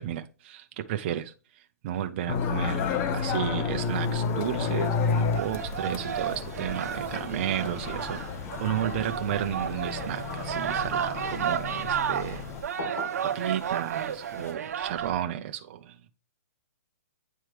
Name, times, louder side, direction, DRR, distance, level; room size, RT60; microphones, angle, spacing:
voice 1, 0.0-1.3 1.8-8.2 8.6-12.4 13.3-16.1, right 11 dB, 40° right, 0.5 m, -33 dB
sound 1, 2.3-12.6, left 5 dB, 25° left, 0.6 m, -31 dB
sound 2, 3.8-14.5, left 2 dB, 70° left, 1.8 m, -46 dB
sound 3, 5.3-15.1, right 8 dB, 70° right, 0.8 m, -32 dB
9.1 x 3.1 x 3.3 m
hypercardioid pair, 155°, 9 cm